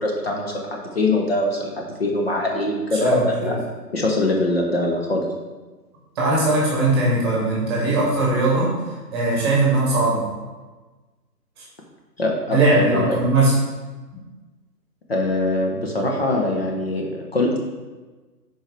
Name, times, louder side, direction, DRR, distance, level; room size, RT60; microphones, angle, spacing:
voice 1, 0.0-3.6 3.9-5.2 12.2-12.6 12.8-13.2 15.1-17.6, left 2 dB, 35° left, 0 dB, 0.9 m, -23 dB
voice 2, 3.0-3.5 6.1-8.7 9.1-10.3 12.5-13.5, right 2 dB, 15° right, -5 dB, 1.3 m, -19 dB
10.0 x 4.5 x 3.3 m, 1.3 s
figure-of-eight pair, 140°, 50 cm